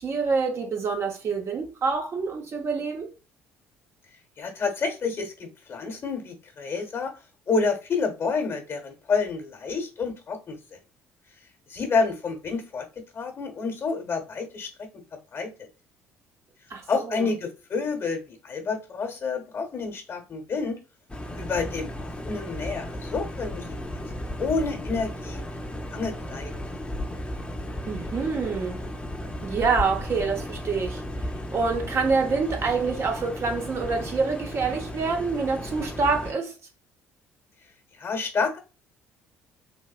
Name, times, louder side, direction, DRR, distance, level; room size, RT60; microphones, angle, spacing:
voice 1, 0.0-3.1 16.7-17.2 27.9-28.8 29.4-31.0 31.5-36.5, right 4 dB, 45° right, 0.8 m, -26 dB
voice 2, 4.4-7.1 7.5-10.6 11.7-12.9 13.1-14.9 15.3-15.7 16.9-20.8 21.3-23.8 24.4-25.4 25.9-26.5 38.0-38.6, left 4 dB, 45° left, 1.0 m, -29 dB
sound 1, 21.1-36.3, left 1 dB, 15° left, 0.7 m, -35 dB
3.5 x 2.6 x 2.4 m
hypercardioid pair, 55°, 6 cm